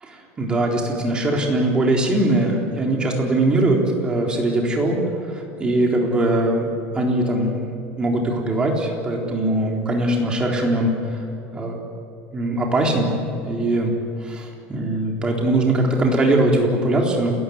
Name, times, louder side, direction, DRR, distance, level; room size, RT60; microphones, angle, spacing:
voice 1, 0.0-5.0 5.3-6.7 6.9-11.2 11.5-11.8 12.3-13.1 13.4-13.9 14.2-17.3, right 1 dB, 15° right, 0 dB, 3.9 m, -21 dB
30.0 x 14.0 x 9.5 m, 2.7 s
cardioid pair, 160°, 5 cm